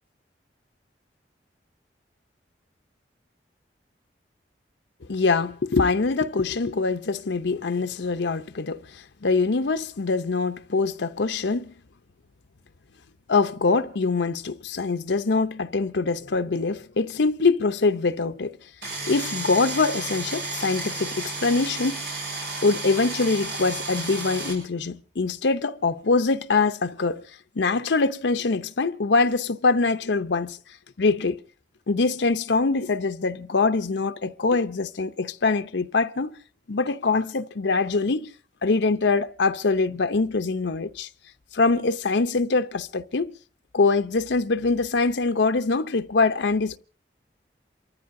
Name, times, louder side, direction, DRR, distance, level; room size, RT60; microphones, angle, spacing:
voice 1, 5.1-11.7 13.3-18.6 19.1-22.0 22.6-27.2 27.6-30.6 31.0-31.4 31.9-36.4 36.7-38.3 38.6-41.1 41.5-43.3 43.7-46.8, left 3 dB, 90° left, 0.7 m, -24 dB
sound 1, 18.8-24.5, right 3 dB, 70° right, 7.7 m, -32 dB
28.0 x 14.5 x 2.6 m
head